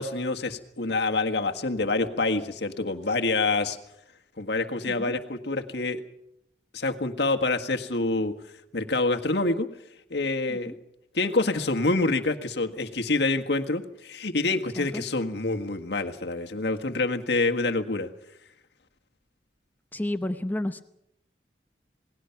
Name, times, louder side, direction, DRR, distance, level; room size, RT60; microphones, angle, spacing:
voice 1, 0.0-3.8 4.4-6.0 6.7-8.4 8.7-9.7 10.1-10.7 11.1-18.1, left 3 dB, 70° left, 4 dB, 1.7 m, -26 dB
voice 2, 19.9-20.8, left 1 dB, 10° left, 9 dB, 0.8 m, -31 dB
28.0 x 19.5 x 5.9 m, 0.79 s
head